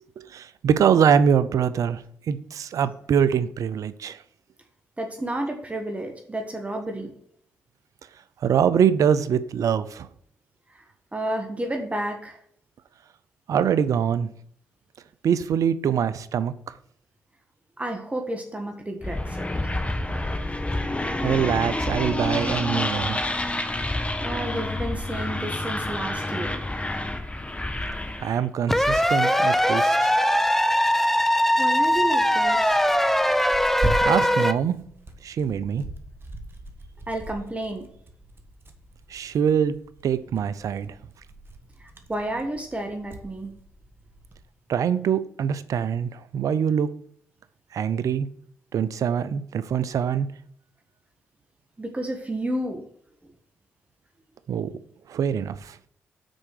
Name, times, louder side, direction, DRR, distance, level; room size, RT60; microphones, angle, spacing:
voice 1, 0.3-2.0 2.3-4.2 8.4-10.1 13.5-14.3 15.2-16.5 21.2-23.2 28.2-30.1 34.0-34.8 35.2-35.8 39.1-39.7 40.0-40.9 44.7-46.9 47.7-48.3 48.7-50.3 54.5-54.7 55.1-55.7, right 8 dB, 70° right, 0.6 m, -23 dB
voice 2, 5.0-7.1 11.1-12.4 17.8-19.7 24.2-26.6 31.6-32.8 37.1-37.9 42.1-43.5 51.8-52.8, right 1 dB, 25° right, 1.4 m, -31 dB
sound 1, 19.0-28.4, left 1 dB, 20° left, 1.5 m, -28 dB
sound 2, 28.7-34.5, equal, 5° left, 0.6 m, -21 dB
Tearing, 31.8-44.4, right 1 dB, 40° right, 1.4 m, -38 dB
6.3 x 4.8 x 6.5 m
supercardioid pair, 50°, 6 cm